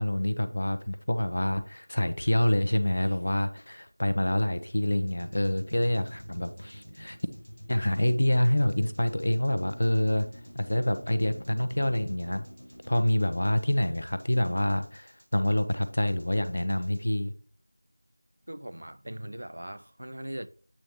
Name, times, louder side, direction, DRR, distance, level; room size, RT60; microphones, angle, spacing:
voice 1, 0.0-7.2 7.7-10.3 10.5-12.4 12.9-17.3, left 1 dB, 45° left, 0.8 m, -27 dB
sound 1, 5.1-17.0, equal, 75° right, 2.5 m, -47 dB
voice 2, 18.5-20.5, right 1 dB, 50° right, 0.5 m, -40 dB
8.3 x 6.3 x 2.9 m
figure-of-eight pair, 175°, 0 cm